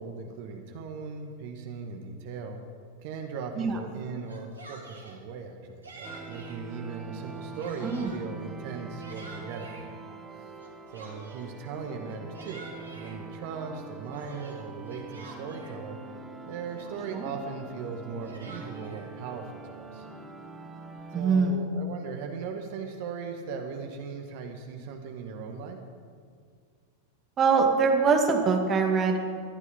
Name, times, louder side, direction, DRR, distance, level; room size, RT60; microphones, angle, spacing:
voice 1, 0.0-2.6 3.0-9.8 10.9-16.0 16.5-20.1 21.1-25.8, right 5 dB, 50° right, 4 dB, 1.8 m, -38 dB
Yell, 4.2-5.2 5.8-6.6 7.2-8.2 8.7-9.9 10.6-11.6 12.1-13.2 13.7-15.8 16.4-16.5 16.8-17.2 18.0-19.1, right 3 dB, 75° right, 2.6 m, -48 dB
sound 1, 6.0-21.2, right 3 dB, 10° right, 1.4 m, -44 dB
voice 2, 21.1-21.6 27.4-29.2, right 5 dB, 25° right, 3 dB, 2.3 m, -23 dB
21.0 x 12.0 x 5.4 m, 2.1 s
figure-of-eight pair, 90°, 0 cm